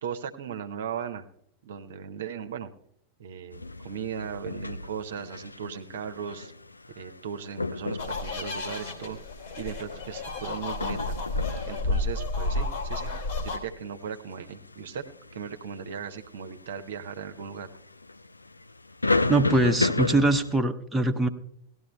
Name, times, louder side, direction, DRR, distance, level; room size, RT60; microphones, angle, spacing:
voice 1, 0.0-1.2 1.6-2.7 3.2-6.5 7.0-9.2 9.5-11.2 11.6-13.1 13.4-15.0 15.3-17.7, right 7 dB, 60° right, 9 dB, 0.7 m, -37 dB
sound 1, 3.5-20.6, left 3 dB, 80° left, 0.3 m, -34 dB
sound 2, 8.0-13.6, left 2 dB, 55° left, 2.3 m, -31 dB
voice 2, 19.3-21.3, right 2 dB, 5° right, 4 dB, 0.8 m, -23 dB
18.0 x 12.5 x 2.2 m, 0.71 s
figure-of-eight pair, 90°, 0 cm